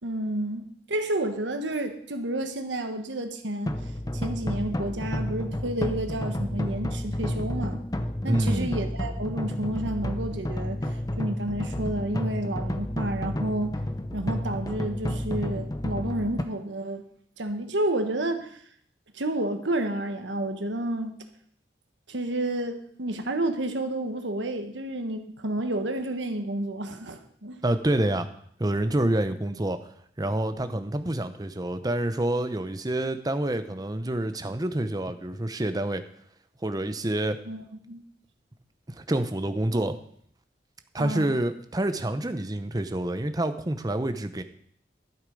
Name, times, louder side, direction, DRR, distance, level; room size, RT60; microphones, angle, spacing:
voice 1, 0.0-3.8 4.1-7.8 8.2-10.9 11.2-13.8 14.1-17.0 17.4-18.6 19.1-21.2 22.1-27.6 37.5-38.0 41.0-41.4, right 1 dB, 85° right, 6 dB, 1.3 m, -30 dB
sound 1, 3.7-16.4, left 1 dB, 20° left, 0.7 m, -31 dB
voice 2, 8.2-8.7 27.6-28.3 28.6-29.9 30.2-36.0 36.6-37.4 38.9-40.0 40.9-44.4, right 1 dB, 20° right, 9 dB, 0.7 m, -27 dB
12.5 x 8.1 x 5.3 m, 0.63 s
head